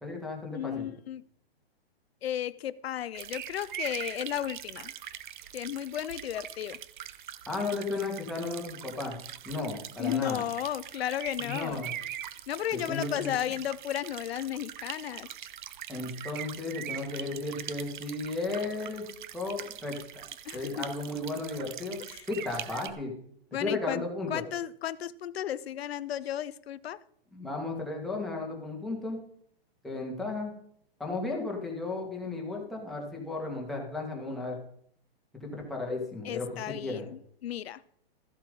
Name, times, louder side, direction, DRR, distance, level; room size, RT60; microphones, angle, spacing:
voice 1, 0.0-0.9 7.5-9.2 9.4-10.4 11.4-11.9 12.7-13.3 15.9-19.1 19.3-20.2 20.5-22.0 22.3-23.1 23.6-24.4 27.3-29.2 29.8-30.5 31.0-34.5 35.4-36.5 36.8-37.1, left 3 dB, ahead, -2 dB, 1.9 m, -34 dB
voice 2, 0.5-1.2 2.2-4.9 5.5-6.8 10.0-11.8 12.5-15.3 20.4-20.7 22.1-22.2 23.5-24.0 24.3-27.0 36.2-37.8, left 11 dB, 85° left, 16 dB, 0.6 m, -34 dB
sound 1, 3.1-22.9, right 11 dB, 50° right, 0.8 m, -42 dB
13.5 x 7.4 x 5.3 m, 0.66 s
hypercardioid pair, 160°, 30 cm